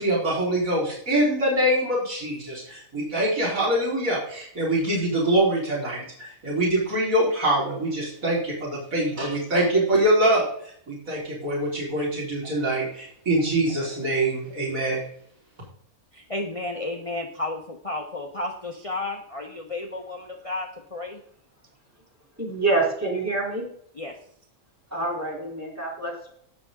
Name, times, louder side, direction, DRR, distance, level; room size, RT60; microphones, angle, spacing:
voice 1, 0.0-15.0, right 1 dB, 80° right, -7 dB, 5.0 m, -24 dB
voice 2, 16.1-21.2 24.0-24.1, left 2 dB, 25° left, 3 dB, 1.1 m, -32 dB
voice 3, 22.4-23.7 24.9-26.3, right 2 dB, 10° right, -3 dB, 3.7 m, -26 dB
17.0 x 6.9 x 3.8 m, 0.64 s
omnidirectional pair, 1.4 m